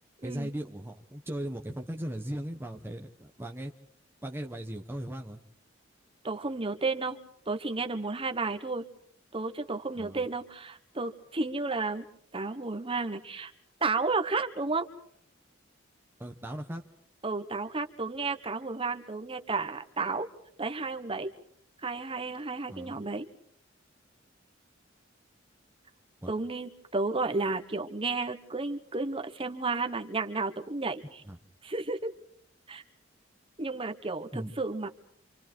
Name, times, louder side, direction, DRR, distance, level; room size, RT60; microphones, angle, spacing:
voice 1, 0.2-3.7 4.2-5.4 9.9-10.3 16.2-16.8 22.7-23.1 26.2-26.3 31.2-31.4 34.3-34.5, right 1 dB, 10° right, 3 dB, 1.0 m, -38 dB
voice 2, 6.2-7.2 7.5-8.8 9.3-12.0 12.3-13.5 13.8-14.9 17.2-20.3 20.6-21.3 21.8-23.3 26.3-31.2 31.6-32.1 32.7-32.8 33.6-34.9, right 3 dB, 30° right, 7 dB, 1.3 m, -32 dB
27.5 x 27.0 x 4.6 m, 0.64 s
head